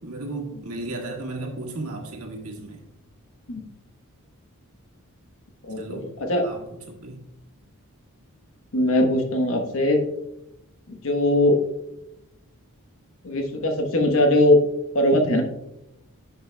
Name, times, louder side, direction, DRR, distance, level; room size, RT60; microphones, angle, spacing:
voice 1, 0.0-2.8 5.8-6.1 6.4-6.6 6.9-7.2, right 2 dB, 75° right, 1 dB, 1.7 m, -34 dB
voice 2, 5.6-6.4 8.7-10.0 10.9-11.6 13.2-14.6 14.9-15.4, left 1 dB, 65° left, 4 dB, 1.1 m, -20 dB
11.0 x 6.6 x 2.2 m, 0.86 s
head